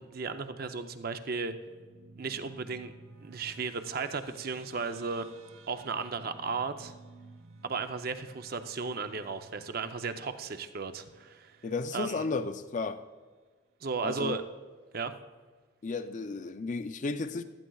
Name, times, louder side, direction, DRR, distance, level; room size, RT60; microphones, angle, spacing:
voice 1, 0.0-1.5 2.2-2.9 3.2-5.3 5.7-6.9 7.6-11.5 11.9-12.3 13.8-14.4 14.9-15.1, right 4 dB, 50° right, 0.6 m, -35 dB
sound 1, 1.7-12.4, right 3 dB, 80° right, 0.9 m, -55 dB
voice 2, 11.6-13.0 14.0-14.4 15.8-17.4, left 3 dB, 40° left, 0.4 m, -33 dB
15.0 x 12.5 x 2.3 m
head